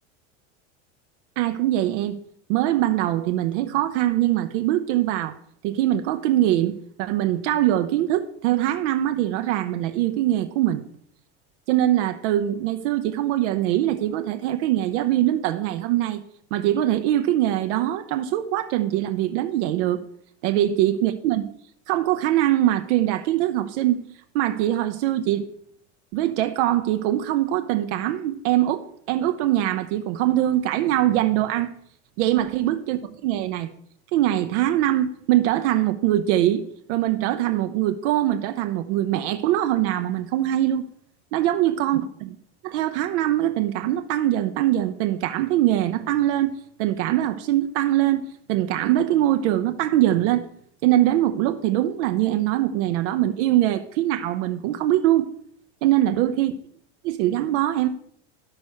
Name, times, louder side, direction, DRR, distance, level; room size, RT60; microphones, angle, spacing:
voice 1, 1.4-2.2 2.5-5.4 5.6-10.8 11.7-16.2 16.5-20.0 20.4-21.4 21.9-24.0 24.3-25.5 26.1-31.7 32.2-33.7 34.1-36.6 36.9-40.8 41.3-42.4 42.6-46.5 46.8-48.2 48.5-50.5 50.8-55.3 55.8-56.5 57.0-57.9, right 13 dB, 70° right, 0.8 m, -22 dB
11.5 x 6.1 x 6.3 m
supercardioid pair, 130°, 36 cm